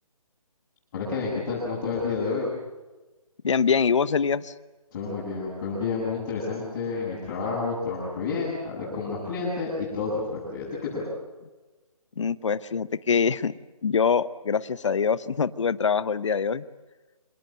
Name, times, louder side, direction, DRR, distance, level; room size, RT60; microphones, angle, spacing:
voice 1, 0.9-2.5 4.9-11.0, left 4 dB, 30° left, -6 dB, 7.8 m, -30 dB
voice 2, 3.4-4.5 12.2-13.5 13.8-16.6, left 6 dB, 55° left, 16 dB, 0.9 m, -24 dB
26.5 x 18.5 x 9.0 m, 1.2 s
figure-of-eight pair, 155°, 19 cm